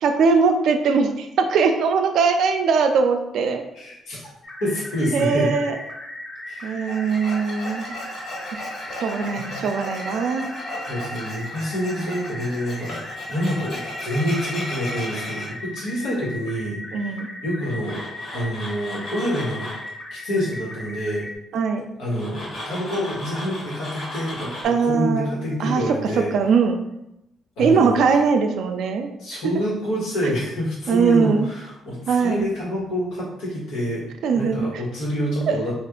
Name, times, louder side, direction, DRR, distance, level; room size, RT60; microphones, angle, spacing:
voice 1, 0.0-3.6 5.1-5.8 6.6-7.9 9.0-10.5 16.9-17.3 21.5-21.9 24.6-25.3 25.6-26.8 27.6-29.1 30.2-30.3 30.9-31.5 32.1-32.5 34.2-34.8 35.5-35.6, right 5 dB, 75° right, 6 dB, 0.4 m, -21 dB
voice 2, 3.7-4.2 4.6-5.5 6.5-6.7 8.8-9.0 9.3-9.6 10.9-18.0 18.3-19.7 20.1-21.2 22.0-26.3 27.6-28.0 29.2-34.0 34.3-35.7, equal, 90° left, -5 dB, 1.4 m, -27 dB
sound 1, 4.4-21.4, left 1 dB, 40° left, 0.8 m, -37 dB
Tools, 6.9-15.5 17.6-19.9 22.1-24.6, left 1 dB, 60° left, 1.3 m, -35 dB
3.3 x 2.5 x 3.7 m, 0.84 s
cardioid pair, 90°, 0 cm